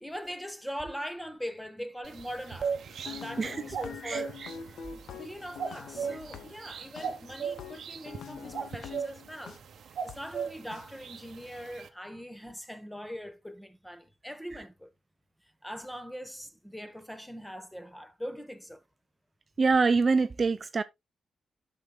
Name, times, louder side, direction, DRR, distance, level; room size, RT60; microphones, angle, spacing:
voice 1, 0.0-2.8 3.0-4.4 4.9-14.9 15.6-18.8, equal, 5° left, 1.2 m, -41 dB
sound 1, 2.0-11.9, right 6 dB, 70° right, 0.9 m, -39 dB
sound 2, 2.9-9.6 10.1-10.2 10.7-10.8, left 7 dB, 85° left, 0.9 m, -45 dB
voice 2, 4.0-4.5 19.6-20.8, right 4 dB, 40° right, 0.5 m, -25 dB
11.5 x 6.1 x 2.3 m
cardioid pair, 100°, 0 cm